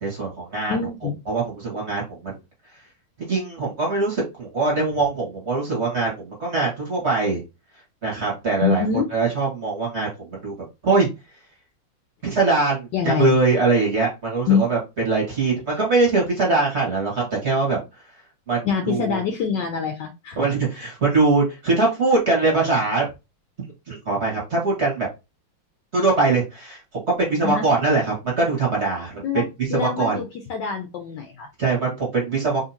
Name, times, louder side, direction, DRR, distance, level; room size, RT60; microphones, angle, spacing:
voice 1, 0.0-0.7 1.3-2.3 3.2-7.4 8.0-8.8 9.1-10.5 10.8-11.1 12.2-14.8 15.1-17.8 18.5-19.2 20.4-23.0 23.9-25.1 25.9-26.8 27.2-29.2 29.7-30.2 31.6-32.6, right 3 dB, 35° right, -3 dB, 1.3 m, -22 dB
voice 2, 0.7-1.2 8.6-9.1 12.9-13.4 14.5-14.7 18.6-20.4 27.4-27.7 29.2-31.5, left 6 dB, 75° left, 3 dB, 1.0 m, -24 dB
3.8 x 2.7 x 2.7 m, 0.26 s
omnidirectional pair, 2.3 m